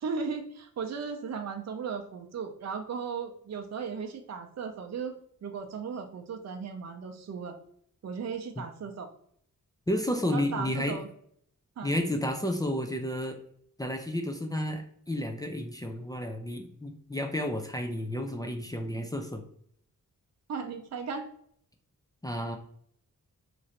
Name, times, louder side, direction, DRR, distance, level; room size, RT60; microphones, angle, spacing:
voice 1, 0.0-5.1 5.4-7.6 8.0-9.1 10.3-11.1 11.8-12.0 20.5-21.2, right 5 dB, 50° right, 4 dB, 0.5 m, -36 dB
voice 2, 9.9-11.0 11.8-13.4 13.8-19.4 22.2-22.6, left 1 dB, 10° left, 3 dB, 0.4 m, -31 dB
3.1 x 2.5 x 4.1 m, 0.66 s
wide cardioid pair, 135°, 33 cm